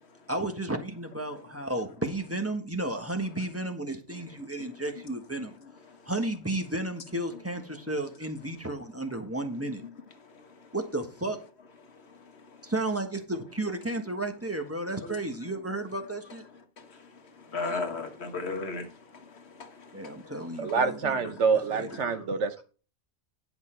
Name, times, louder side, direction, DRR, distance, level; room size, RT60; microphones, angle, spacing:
voice 1, 0.3-5.6 6.1-9.8 10.7-11.4 12.6-16.4 19.9-21.3 21.7-22.3, right 2 dB, 10° right, 1.3 m, -33 dB
voice 2, 5.4-6.1 9.1-9.2 10.2-10.7 11.8-12.7 15.0-15.2 16.8-20.8, left 3 dB, 65° left, 1.5 m, -39 dB
voice 3, 20.6-22.6, right 5 dB, 80° right, 1.3 m, -26 dB
10.5 x 5.9 x 4.5 m
omnidirectional pair, 1.2 m